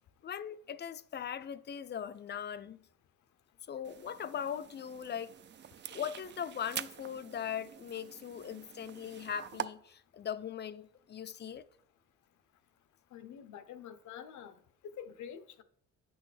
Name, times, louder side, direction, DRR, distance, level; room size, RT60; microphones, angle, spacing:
voice 1, 0.2-2.9 3.7-5.3 5.9-11.7, left 8 dB, 35° left, 0.4 m, -40 dB
sound 1, 3.8-9.7, right 9 dB, 40° right, 0.4 m, -45 dB
voice 2, 13.1-14.6 14.8-15.6, left 8 dB, 75° left, 0.7 m, -47 dB
8.9 x 6.2 x 3.3 m
cardioid pair, 90°, 30 cm